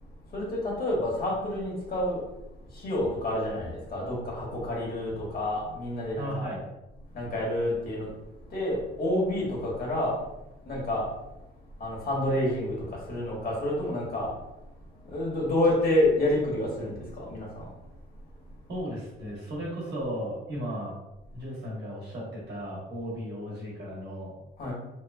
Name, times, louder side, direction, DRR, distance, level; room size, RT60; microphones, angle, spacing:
voice 1, 0.2-2.2 2.6-6.5 7.1-8.1 8.5-10.2 10.6-11.4 11.8-14.3 14.9-17.9 18.2-18.6 24.6-24.7, left 1 dB, 50° left, -4 dB, 1.2 m, -29 dB
voice 2, 6.2-6.6 18.7-21.0 21.3-24.4, equal, 60° right, -5 dB, 1.1 m, -35 dB
2.9 x 2.2 x 2.2 m, 0.93 s
cardioid pair, 90°, 20 cm